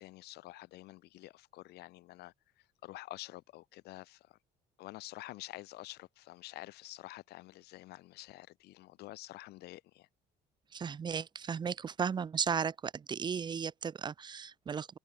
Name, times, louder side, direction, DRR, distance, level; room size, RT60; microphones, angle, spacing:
voice 1, 0.0-2.3 2.8-4.4 4.8-10.1, left 18 dB, 75° left, 0.6 m, -48 dB
voice 2, 10.7-15.0, right 6 dB, 25° right, 0.5 m, -35 dB
cardioid pair, 110°, 17 cm